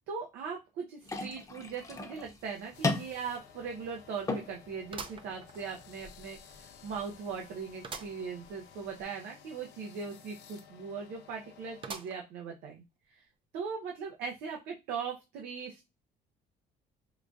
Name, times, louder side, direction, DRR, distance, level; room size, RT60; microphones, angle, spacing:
voice 1, 0.1-13.2 13.5-15.9, right 5 dB, 85° right, 1 dB, 0.7 m, -40 dB
sound 1, 1.0-9.0, left 3 dB, 20° left, 0.7 m, -40 dB
sound 2, 2.7-11.9, left 8 dB, 80° left, 0.7 m, -55 dB
sound 3, 2.7-2.8 3.2-3.3 4.9-6.0 6.5-6.6 7.8-8.2 8.7-8.8 9.0-9.1 11.8-12.4 13.0-13.1 14.1-14.2, right 5 dB, 30° right, 0.4 m, -44 dB
4.8 x 2.3 x 2.5 m, 0.24 s
cardioid pair, 110°, 17 cm